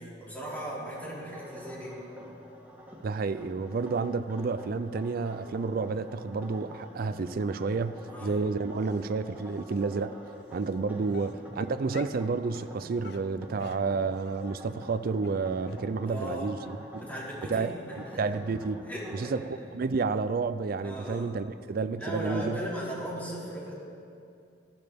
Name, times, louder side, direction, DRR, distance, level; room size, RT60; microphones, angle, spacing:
voice 1, 0.0-2.0 8.1-8.4 10.9-11.1 16.1-16.5 16.9-17.7 18.0-18.4 18.9-19.3 20.8-21.3 22.0-23.7, right 1 dB, 10° left, -6 dB, 3.4 m, -37 dB
sound 1, 0.9-19.5, equal, 10° right, 1.7 m, -47 dB
voice 2, 3.0-10.2 10.5-16.6 16.9-17.0 17.5-18.8 19.1-19.4 19.7-22.6, right 4 dB, 55° right, 12 dB, 0.4 m, -30 dB
Dog, 8.7-9.1 9.7-9.8 10.6-10.7 11.1-12.2 12.5-12.7 13.0-14.5 14.8-15.0 15.2-15.3 15.7-15.8 16.2-16.3 16.6-16.7 17.0-17.1, left 5 dB, 60° left, 0.6 m, -48 dB
19.5 x 13.0 x 3.5 m, 2.4 s
head